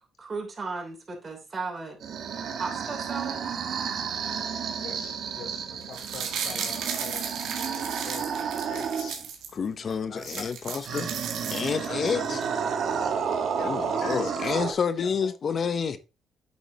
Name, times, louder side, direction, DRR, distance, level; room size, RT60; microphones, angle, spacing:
voice 1, 0.2-2.0 2.6-3.4, right 4 dB, 35° right, 3.2 m, -35 dB
sound 1, 2.0-9.3 10.8-14.7, right 6 dB, 65° right, 1.4 m, -31 dB
voice 2, 4.8-7.3 7.6-8.3 8.7-9.2 10.1-10.5 10.9-11.0 11.9-12.5 13.5-14.5 14.9-15.3, left 5 dB, 75° left, 2.6 m, -42 dB
sound 2, 5.8-9.5 9.9-10.0 10.2-12.1 12.4-12.5, right 7 dB, 85° right, 1.9 m, -35 dB
voice 3, 9.5-11.1 11.5-12.4 13.6-16.0, left 6 dB, 50° left, 0.8 m, -29 dB
8.7 x 6.8 x 2.8 m
cardioid pair, 90°, 0 cm